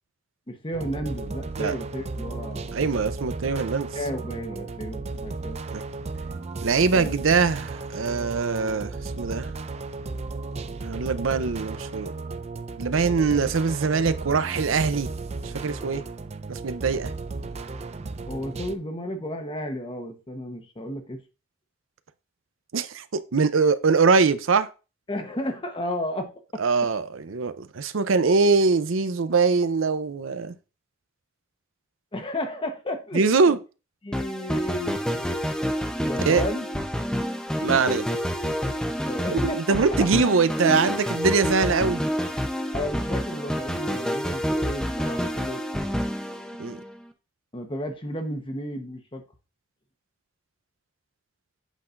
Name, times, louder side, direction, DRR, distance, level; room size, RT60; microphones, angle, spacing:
voice 1, 0.5-2.7 3.9-5.6 6.9-7.2 18.3-21.2 25.1-26.7 32.1-33.5 34.0-35.3 36.0-36.7 39.1-39.8 42.7-45.6 47.5-49.2, equal, 25° left, 1.0 m, -33 dB
sound 1, 0.7-18.8, right 3 dB, 30° right, 0.4 m, -34 dB
voice 2, 2.7-3.9 5.7-5.8 6.6-9.5 10.8-12.1 12.8-15.1 15.4-16.0 16.5-17.1 22.7-24.7 26.6-30.5 33.1-33.6 36.3-36.4 37.6-38.1 39.3-42.1 46.6-46.8, right 4 dB, 85° right, 0.6 m, -23 dB
sound 2, 34.1-47.0, equal, 5° left, 0.7 m, -28 dB
8.2 x 5.7 x 2.5 m
head